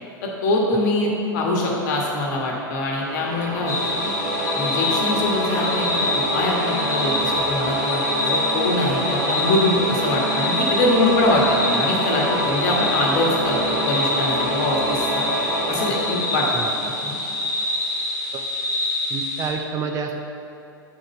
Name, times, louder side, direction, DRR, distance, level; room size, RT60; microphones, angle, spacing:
voice 1, 0.2-4.1 4.5-15.3 15.7-16.5 16.8-17.2, left 2 dB, 55° left, -1 dB, 1.4 m, -23 dB
sound 1, 2.9-17.5, equal, 55° right, 1.8 m, -26 dB
sound 2, 3.7-19.5, left 2 dB, 30° left, 1.4 m, -26 dB
voice 2, 19.1-20.2, right 5 dB, 30° right, 4 dB, 0.5 m, -28 dB
6.5 x 4.8 x 5.5 m, 2.7 s
figure-of-eight pair, 90°, 11 cm